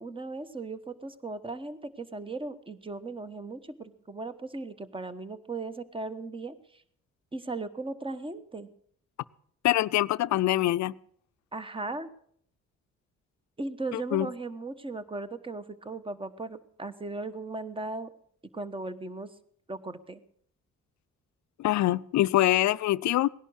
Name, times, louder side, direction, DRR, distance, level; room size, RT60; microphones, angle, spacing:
voice 1, 0.0-6.8 7.3-8.7 11.5-12.1 13.6-18.1 18.5-19.3 19.7-20.2, right 3 dB, 15° right, 1.2 m, -37 dB
voice 2, 9.6-10.9 13.9-14.3 21.6-23.3, left 15 dB, 65° left, 0.5 m, -24 dB
18.0 x 11.0 x 6.4 m
cardioid pair, 90°, 30 cm